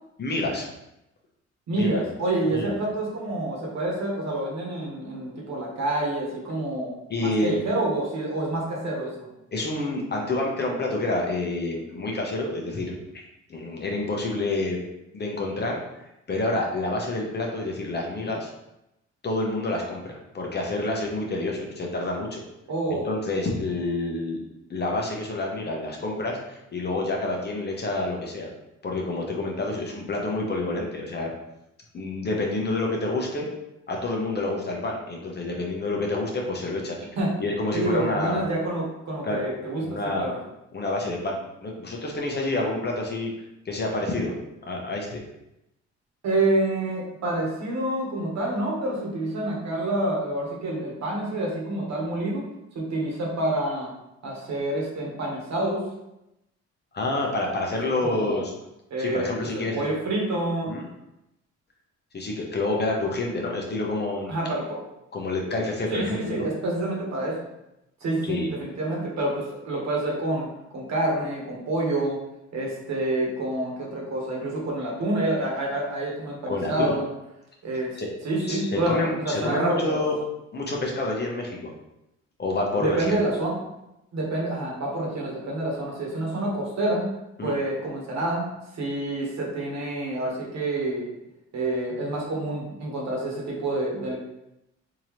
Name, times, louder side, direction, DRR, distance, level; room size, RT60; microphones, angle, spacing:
voice 1, 0.2-0.7 1.7-2.0 2.5-2.7 7.1-7.6 9.5-12.9 13.5-14.8 15.1-15.8 16.3-18.5 19.2-22.4 22.9-24.4 24.7-28.5 28.8-31.3 31.9-33.5 33.9-37.0 37.4-38.4 39.2-39.4 39.8-40.3 40.7-43.3 43.6-44.3 44.7-45.2 56.9-58.5 59.0-59.8 60.7-60.8 62.1-64.3 65.1-66.5 68.2-68.5 76.5-76.9 78.0-78.1 78.4-80.2 80.5-81.7 82.4-83.3 87.4-87.5, left 2 dB, 35° left, -1 dB, 0.9 m, -28 dB
voice 2, 1.7-6.9 7.2-9.3 22.7-23.1 37.2-37.3 37.7-40.4 46.2-52.5 52.7-53.9 54.2-55.9 57.8-58.4 58.9-60.8 64.3-64.8 65.9-67.4 68.0-72.2 72.5-77.1 77.6-78.0 78.2-80.0 82.8-83.6 84.1-87.1 87.4-88.5 88.7-91.0 91.5-94.2, right 1 dB, 65° right, -2 dB, 1.3 m, -28 dB
3.7 x 2.9 x 3.1 m, 0.89 s
cardioid pair, 90°, 30 cm